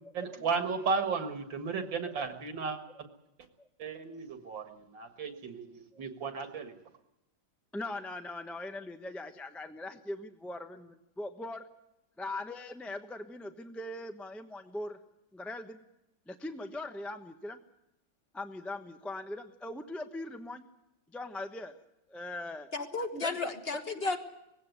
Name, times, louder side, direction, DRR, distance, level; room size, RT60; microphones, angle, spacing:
voice 1, 0.1-2.8 3.8-6.7, right 5 dB, 70° right, 7 dB, 2.4 m, -34 dB
voice 2, 7.7-11.6 12.2-15.0 15.3-15.8 16.3-17.6 18.3-20.7 21.1-21.8 22.1-22.7 23.2-23.8, left 2 dB, ahead, 7 dB, 0.6 m, -41 dB
voice 3, 22.7-24.2, left 3 dB, 30° left, 7 dB, 1.5 m, -33 dB
19.5 x 16.5 x 9.5 m, 0.88 s
omnidirectional pair, 2.2 m